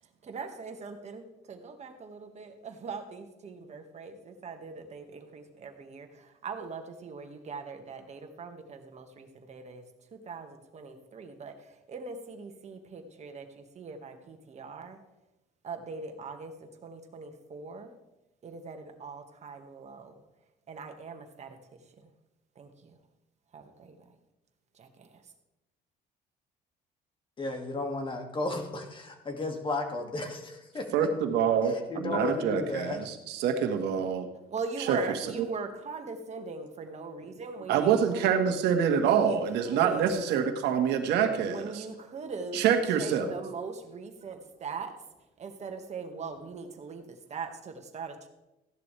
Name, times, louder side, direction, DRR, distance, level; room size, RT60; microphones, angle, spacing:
voice 1, 0.2-9.8 10.1-15.0 15.6-17.9 18.4-20.2 20.7-21.6 22.0-22.1 22.6-22.9 23.5-24.0 24.7-25.3 34.5-38.4 39.0-40.1 41.5-42.6 43.0-45.0 45.4-48.3, right 4 dB, 40° right, 5 dB, 1.8 m, -41 dB
voice 2, 27.4-31.1 31.9-33.1, left 2 dB, 30° left, 4 dB, 2.3 m, -34 dB
voice 3, 30.9-34.3 34.8-35.0 37.7-41.9 42.5-43.3, right 7 dB, 85° right, 5 dB, 1.7 m, -26 dB
15.5 x 11.0 x 3.4 m, 0.96 s
cardioid pair, 110°, 17 cm